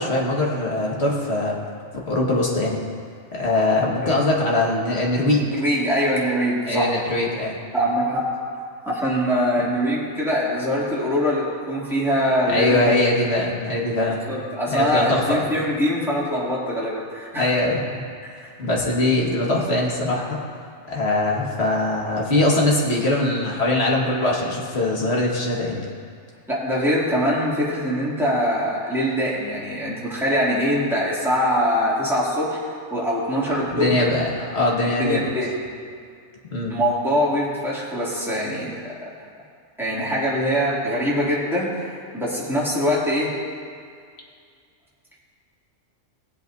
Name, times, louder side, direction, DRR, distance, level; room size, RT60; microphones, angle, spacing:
voice 1, 0.0-1.6 2.1-2.8 3.3-5.5 6.7-7.6 9.6-9.7 12.5-14.2 14.7-15.5 17.4-18.1 18.6-20.4 20.9-25.9 33.5-35.3 36.5-36.8, left 2 dB, 55° left, -2 dB, 1.8 m, -22 dB
voice 2, 5.5-6.9 7.7-8.4 8.8-12.9 14.3-17.5 18.3-18.5 26.5-32.6 32.9-34.0 35.0-35.5 36.7-38.9 39.8-43.4, equal, ahead, -8 dB, 2.3 m, -23 dB
18.5 x 8.1 x 2.6 m, 2.2 s
omnidirectional pair, 1.3 m